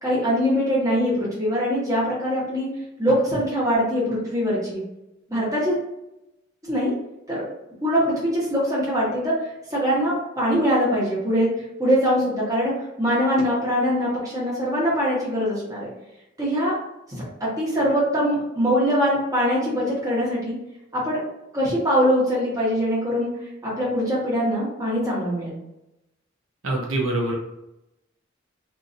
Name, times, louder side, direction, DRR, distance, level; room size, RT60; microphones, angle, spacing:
voice 1, 0.0-2.7 3.0-4.8 5.3-5.8 6.7-6.9 7.3-7.5 7.8-9.3 9.7-11.5 11.8-12.7 13.0-15.9 16.4-16.7 17.6-20.5 20.9-21.2 21.5-23.3 23.6-25.6, equal, 15° right, -7 dB, 1.2 m, -22 dB
voice 2, 26.6-27.3, right 2 dB, 85° right, -2 dB, 0.8 m, -24 dB
2.8 x 2.6 x 2.6 m, 0.90 s
head